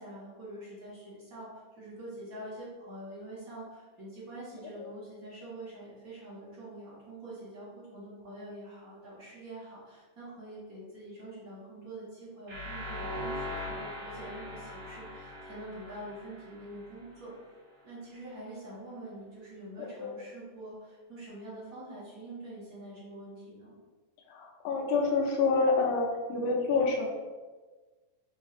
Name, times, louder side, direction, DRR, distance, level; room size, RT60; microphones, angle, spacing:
voice 1, 0.0-17.3 17.8-23.7, right 1 dB, 75° right, -10 dB, 0.7 m, -45 dB
sound 1, 12.5-17.4, left 1 dB, 50° right, 1.7 m, -40 dB
voice 2, 19.8-20.2 24.3-27.1, left 4 dB, 80° left, -1 dB, 2.2 m, -28 dB
5.3 x 3.3 x 2.5 m, 1.3 s
omnidirectional pair, 3.6 m